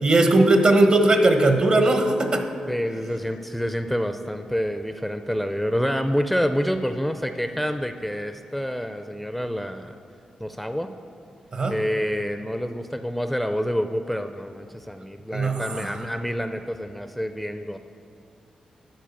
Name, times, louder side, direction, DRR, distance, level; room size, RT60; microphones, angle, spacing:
voice 1, 0.0-2.4 11.5-11.7 15.3-15.9, right 2 dB, 50° right, 5 dB, 1.1 m, -18 dB
voice 2, 2.7-10.0 10.4-10.9 11.7-17.8, equal, ahead, 8 dB, 0.4 m, -27 dB
11.0 x 4.5 x 7.0 m, 2.6 s
cardioid pair, 70°, 2 cm